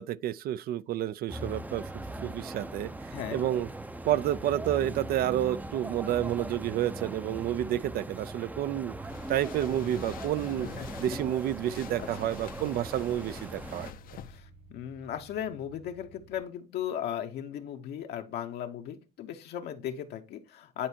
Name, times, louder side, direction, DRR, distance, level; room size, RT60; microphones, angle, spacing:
voice 1, 0.0-1.9 2.2-3.7 4.0-8.9 9.3-10.7 11.0-13.9, right 12 dB, 65° right, 0.4 m, -30 dB
sound 1, 1.3-13.9, right 2 dB, 10° right, 0.5 m, -40 dB
voice 2, 3.1-3.5 10.8-11.0 12.0-12.1 14.2-20.9, left 10 dB, 75° left, 0.9 m, -37 dB
sound 2, 9.1-14.4, left 10 dB, 55° left, 0.6 m, -47 dB
Car / Engine starting, 10.2-16.4, right 2 dB, 90° right, 3.8 m, -54 dB
10.0 x 4.4 x 2.8 m
cardioid pair, 110°, 17 cm